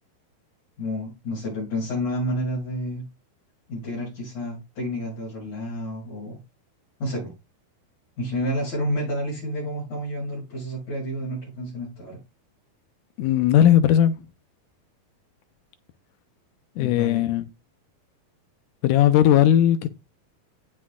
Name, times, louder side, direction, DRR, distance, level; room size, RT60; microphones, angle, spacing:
voice 1, 0.8-3.0 3.7-6.4 7.0-7.3 8.2-12.2 16.8-17.2, equal, 50° left, 8.3 m, -30 dB
voice 2, 13.2-14.1 16.8-17.5 18.8-19.9, left 11 dB, 80° left, 2.0 m, -17 dB
17.5 x 6.1 x 2.3 m
omnidirectional pair, 4.3 m